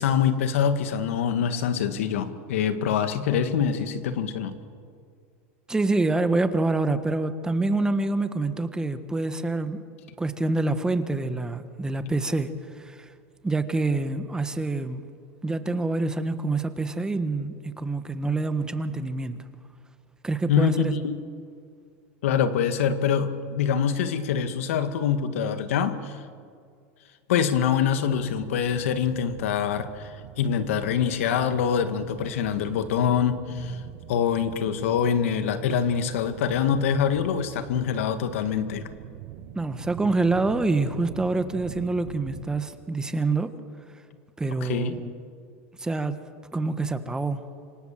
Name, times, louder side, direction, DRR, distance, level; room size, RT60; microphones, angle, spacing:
voice 1, 0.0-4.6 20.5-21.2 22.2-26.2 27.3-30.1 30.4-33.8 34.1-38.8 44.6-45.0, left 7 dB, 80° left, 9 dB, 2.0 m, -25 dB
voice 2, 5.7-9.8 10.2-12.5 12.7-13.1 13.4-15.0 15.4-19.4 20.2-20.9 39.5-43.5 44.4-45.1 45.8-46.2 46.5-47.4, right 2 dB, 10° right, 10 dB, 1.5 m, -26 dB
sound 1, 28.1-42.6, right 11 dB, 65° right, 1.8 m, -43 dB
26.5 x 25.5 x 7.6 m, 2.2 s
supercardioid pair, 130°, 7 cm